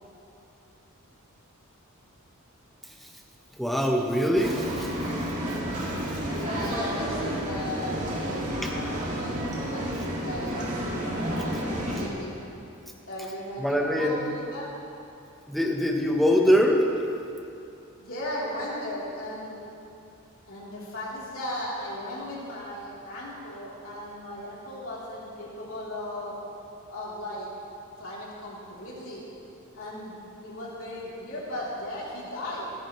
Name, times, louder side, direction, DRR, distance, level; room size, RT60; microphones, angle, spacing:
voice 1, 3.6-4.9 5.5-5.6 6.0-6.2 8.6-8.7 13.6-14.3 15.5-16.9, equal, ahead, 0 dB, 1.1 m, -23 dB
sound 1, 4.3-12.1, equal, 35° right, 2.0 m, -31 dB
voice 2, 6.3-12.3 13.0-14.7 18.0-19.6 20.5-26.3 26.9-27.5 28.0-29.3 29.7-32.6, left 1 dB, 65° left, -7 dB, 3.5 m, -37 dB
26.0 x 9.4 x 3.2 m, 2.6 s
head